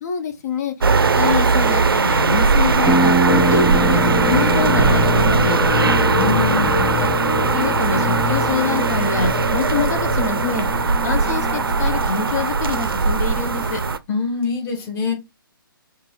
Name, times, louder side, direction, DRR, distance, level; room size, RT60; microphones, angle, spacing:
voice 1, 0.0-0.7 1.2-3.2 3.5-6.0 7.0-7.1 7.4-10.7 11.0-13.8, left 5 dB, 45° left, 0.6 m, -25 dB
sound 1, 0.8-14.0, right 4 dB, 80° right, 0.4 m, -19 dB
sound 2, 2.8-8.3, right 2 dB, 10° right, 0.9 m, -24 dB
sound 3, 3.2-13.3, left 3 dB, 60° left, 1.2 m, -25 dB
voice 2, 6.1-6.9 14.1-15.1, left 4 dB, 20° left, 1.1 m, -24 dB
4.4 x 2.5 x 3.0 m
figure-of-eight pair, 135°, 12 cm